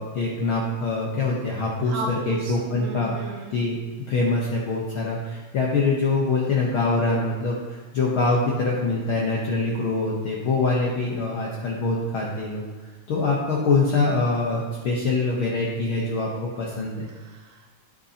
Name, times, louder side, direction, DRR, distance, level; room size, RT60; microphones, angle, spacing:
voice 1, 0.0-2.0 2.3-3.2 3.5-12.6 13.1-17.0, left 3 dB, 60° left, -3 dB, 1.5 m, -24 dB
voice 2, 1.8-3.6 17.1-17.7, right 3 dB, 80° right, 0 dB, 2.2 m, -35 dB
12.0 x 6.9 x 2.9 m, 1.4 s
omnidirectional pair, 3.4 m